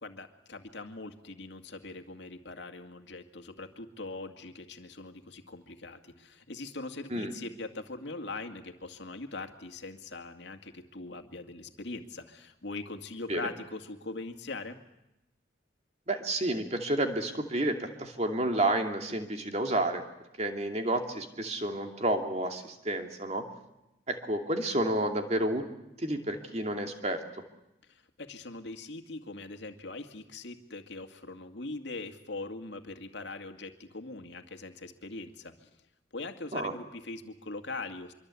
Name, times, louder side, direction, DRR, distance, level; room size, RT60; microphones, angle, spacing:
voice 1, 0.0-14.8 27.9-35.7 36.1-38.1, left 3 dB, 70° left, 6 dB, 2.2 m, -41 dB
voice 2, 16.1-20.0 20.4-23.4 24.1-25.6 26.0-27.2 36.5-36.7, right 1 dB, 35° right, 4 dB, 2.6 m, -30 dB
25.0 x 24.0 x 8.5 m, 0.90 s
head